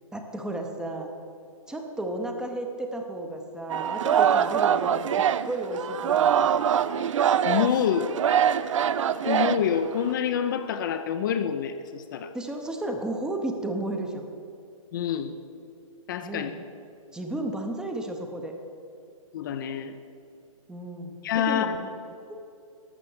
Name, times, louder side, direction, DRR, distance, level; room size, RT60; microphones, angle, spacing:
voice 1, 0.1-1.1 1.7-5.1 5.4-6.5 12.3-14.3 16.2-16.6 17.1-18.5 20.7-21.9 22.3-22.4, right 1 dB, 5° right, 3 dB, 0.7 m, -33 dB
Singing, 3.7-10.1, right 9 dB, 60° right, 0.5 m, -24 dB
voice 2, 7.4-8.2 9.3-12.3 14.9-15.3 16.1-16.5 19.3-19.9 21.2-21.7, left 8 dB, 35° left, 8 dB, 0.5 m, -27 dB
12.0 x 6.7 x 7.7 m, 2.5 s
hypercardioid pair, 145°, 18 cm